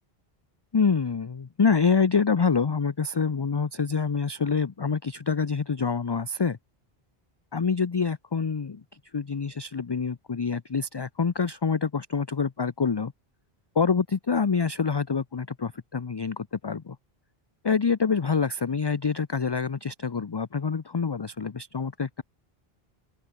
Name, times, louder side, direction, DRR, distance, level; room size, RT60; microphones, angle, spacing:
voice 1, 0.7-6.6 7.5-8.8 9.1-13.1 13.8-17.0 17.6-22.2, left 5 dB, 30° left, 0.5 m, -26 dB
open air
omnidirectional pair, 1.0 m